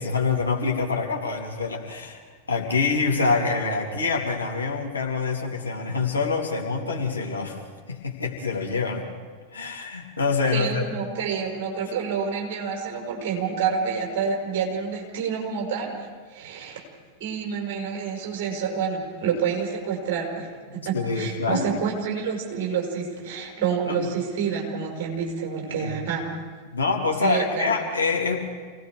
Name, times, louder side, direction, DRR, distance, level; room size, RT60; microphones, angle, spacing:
voice 1, 0.0-2.2 2.5-7.6 7.9-9.1 9.5-10.8 20.8-21.8 23.9-24.1 25.7-25.9 26.7-28.5, left 4 dB, 75° left, 0 dB, 2.9 m, -26 dB
voice 2, 10.5-15.9 16.3-16.8 17.2-26.3 27.2-27.7, right 6 dB, 50° right, -1 dB, 5.7 m, -28 dB
28.5 x 19.0 x 4.9 m, 1.5 s
figure-of-eight pair, 90°, 0 cm